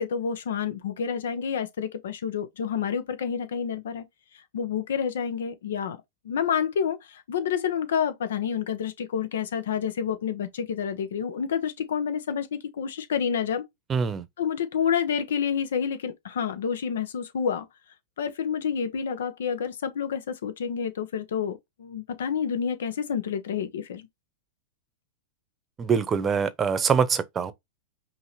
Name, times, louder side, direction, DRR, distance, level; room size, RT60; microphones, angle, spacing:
voice 1, 0.0-4.0 4.5-6.0 6.2-13.7 14.4-17.7 18.2-24.1, left 7 dB, 85° left, 1.0 m, -29 dB
voice 2, 13.9-14.2 25.8-27.5, right 6 dB, 20° right, 0.8 m, -24 dB
5.4 x 2.8 x 3.3 m
supercardioid pair, 140°, 0 cm